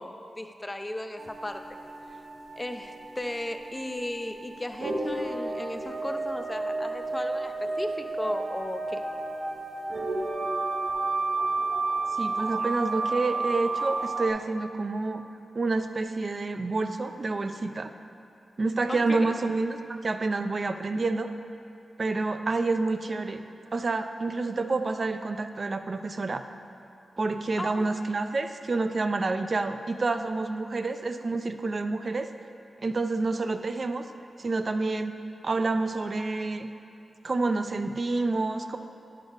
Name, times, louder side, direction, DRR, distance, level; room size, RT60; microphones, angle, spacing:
voice 1, 0.0-1.8 2.6-9.0 18.9-19.3 27.6-27.9, left 1 dB, 15° left, 7 dB, 0.4 m, -36 dB
sound 1, 1.2-14.3, right 3 dB, 80° right, 0.9 m, -31 dB
voice 2, 12.1-15.2 15.5-17.9 18.6-21.3 22.0-23.4 23.7-26.4 27.2-32.3 32.8-34.1 34.4-35.2 35.4-36.7 37.2-38.8, right 3 dB, 45° right, 8 dB, 0.4 m, -28 dB
10.5 x 5.4 x 3.9 m, 2.6 s
wide cardioid pair, 90°, 0 cm